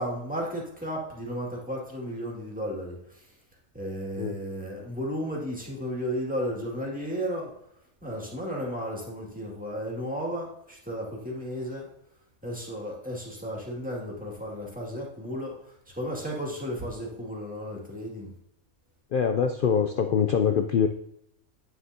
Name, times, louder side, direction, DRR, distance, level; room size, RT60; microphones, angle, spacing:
voice 1, 0.0-3.3 3.7-7.5 8.0-11.8 12.4-18.3, equal, 5° right, -3 dB, 2.1 m, -34 dB
voice 2, 19.1-20.9, left 7 dB, 75° left, 7 dB, 0.4 m, -24 dB
9.4 x 6.4 x 2.7 m, 0.76 s
omnidirectional pair, 1.5 m